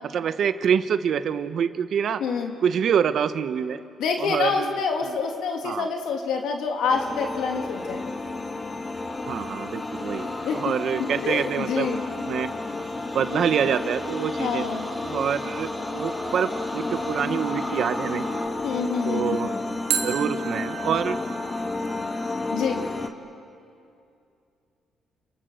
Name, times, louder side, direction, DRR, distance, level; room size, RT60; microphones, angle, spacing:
voice 1, 0.0-2.2 2.6-3.8 4.2-5.2 5.6-5.9 9.3-10.3 10.6-11.9 12.3-12.5 13.1-14.6 15.0-18.4 19.0-19.5 20.0-21.2, right 8 dB, 65° right, 11 dB, 1.1 m, -26 dB
voice 2, 2.2-2.5 4.0-8.0 10.2-10.7 11.0-12.0 14.4-14.9 18.6-19.6 22.5-22.8, left 5 dB, 80° left, 2 dB, 2.8 m, -27 dB
sound 1, 6.9-23.1, left 3 dB, 30° left, 1.7 m, -31 dB
sound 2, 8.9-18.5, equal, 10° left, 7.1 m, -39 dB
sound 3, 11.8-12.9 19.9-22.8, right 9 dB, 90° right, 2.0 m, -34 dB
28.5 x 28.0 x 6.6 m, 2.6 s
cardioid pair, 90°, 0 cm